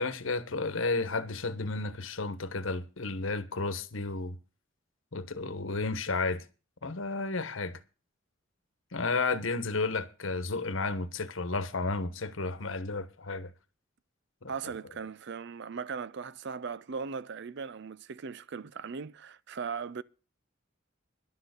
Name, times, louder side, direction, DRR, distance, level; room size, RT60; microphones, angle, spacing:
voice 1, 0.0-4.4 5.1-6.4 6.8-7.8 8.9-13.5 14.4-14.5, left 3 dB, 75° left, 1.1 m, -32 dB
voice 2, 14.5-20.0, right 5 dB, 65° right, 0.5 m, -38 dB
11.0 x 6.6 x 8.0 m
head